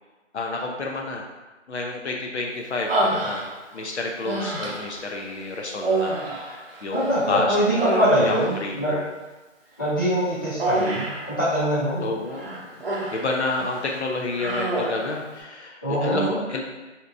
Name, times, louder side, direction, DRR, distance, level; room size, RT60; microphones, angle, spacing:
voice 1, 0.3-1.2 1.7-3.5 3.7-6.1 6.5-8.0 8.3-8.4 8.6-9.0 12.0-12.5 12.9-16.6, left 3 dB, 60° left, 0 dB, 0.6 m, -29 dB
Human voice, 2.9-3.8 4.2-5.0 5.8-7.2 7.5-8.6 10.6-11.3 12.3-13.3 13.7-13.9 14.3-15.1, right 2 dB, 50° right, 0.7 m, -27 dB
voice 2, 6.9-8.9 9.8-12.1 15.8-16.4, equal, 15° left, -12 dB, 0.6 m, -23 dB
3.3 x 2.8 x 2.5 m, 1.2 s
hypercardioid pair, 165°, 38 cm